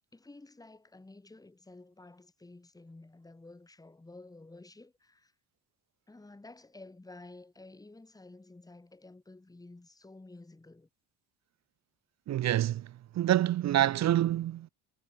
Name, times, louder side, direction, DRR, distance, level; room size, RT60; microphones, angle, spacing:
voice 1, 0.1-5.3 6.1-10.9, left 2 dB, 10° left, 5.4 m, -52 dB
voice 2, 12.3-14.7, right 12 dB, 40° right, 0.7 m, -27 dB
cardioid pair, 175°, 40 cm